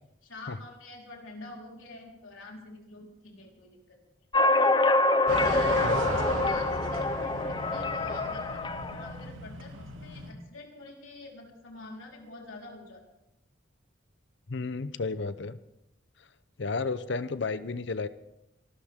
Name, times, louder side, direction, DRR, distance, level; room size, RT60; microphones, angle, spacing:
voice 1, 0.2-4.0 5.3-13.0, left 2 dB, 85° left, -1 dB, 4.2 m, -46 dB
sound 1, 4.3-9.1, left 2 dB, 20° left, 0.6 m, -26 dB
sound 2, 5.3-10.3, right 2 dB, 80° right, 2.8 m, -36 dB
voice 2, 5.8-6.2 14.5-15.6 16.2-16.3 16.6-18.1, left 4 dB, 60° left, 14 dB, 0.7 m, -32 dB
27.0 x 13.5 x 3.7 m, 0.84 s
head